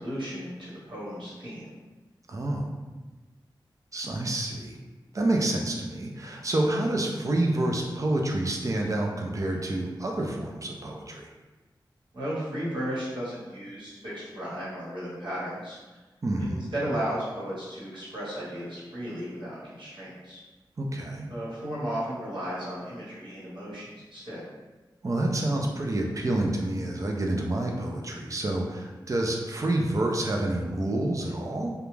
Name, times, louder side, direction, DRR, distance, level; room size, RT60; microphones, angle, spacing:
voice 1, 0.0-1.7 12.1-15.8 16.4-20.4 21.3-24.4, equal, 75° right, -9 dB, 1.2 m, -34 dB
voice 2, 2.3-2.7 3.9-4.8 5.1-11.3 16.2-16.7 20.8-21.3 25.0-31.7, right 1 dB, 40° right, 0 dB, 0.4 m, -28 dB
2.4 x 2.1 x 3.1 m, 1.2 s
wide cardioid pair, 80°, 8 cm